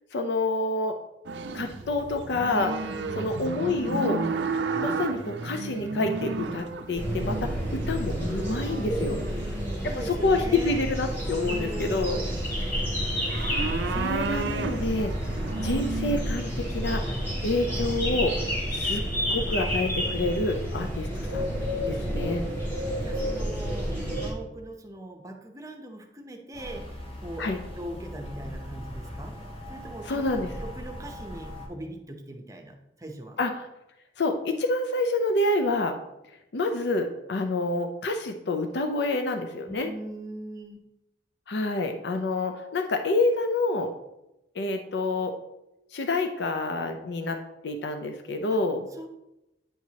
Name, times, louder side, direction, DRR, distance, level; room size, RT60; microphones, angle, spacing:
voice 1, 0.1-0.9 1.5-2.7 3.2-4.2 4.7-9.2 9.9-12.2 13.3-13.5 13.9-17.0 17.4-18.4 18.7-19.0 19.3-22.4 27.4-27.6 30.1-30.5 33.4-33.7 34.2-36.0 36.5-39.9 41.5-43.9 44.5-45.3 45.9-47.4 47.6-48.9, left 2 dB, 65° left, 6 dB, 0.5 m, -28 dB
sound 1, 1.2-9.5 10.6-11.1 11.5-16.7, right 4 dB, 75° right, 0.5 m, -33 dB
voice 2, 2.8-3.4 9.0-10.8 11.4-12.7 21.8-22.6 23.0-23.9 24.2-27.5 27.7-29.4 29.7-30.2 30.6-33.4 39.7-40.9 48.5-48.6 48.9-49.1, right 1 dB, 20° right, 3 dB, 0.7 m, -41 dB
sound 2, 6.9-24.3, equal, 15° left, 2.1 m, -30 dB
sound 3, 26.5-31.7, equal, 30° left, 1.2 m, -40 dB
9.1 x 4.5 x 2.8 m, 0.91 s
head